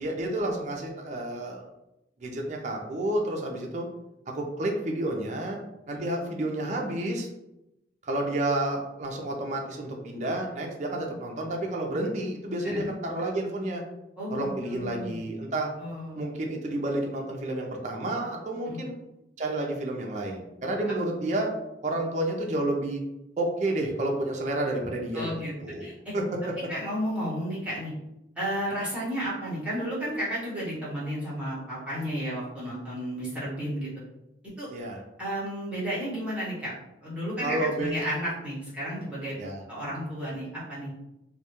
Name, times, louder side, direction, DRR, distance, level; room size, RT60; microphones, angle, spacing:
voice 1, 0.0-1.6 2.2-3.9 4.3-5.6 5.9-7.3 8.0-13.8 14.3-15.7 16.2-18.9 19.4-21.5 21.8-23.0 23.4-25.3 25.6-26.2 34.7-35.0 37.4-38.0 39.4-39.6, right 1 dB, 40° right, 0 dB, 0.4 m, -30 dB
voice 2, 14.2-15.2 15.8-16.2 18.6-18.8 25.1-25.5 25.8-26.1 26.7-27.9 28.4-33.9 34.6-34.7 35.2-36.7 37.0-39.3 39.7-40.9, equal, 5° right, -9 dB, 0.8 m, -32 dB
2.2 x 2.1 x 2.9 m, 0.90 s
head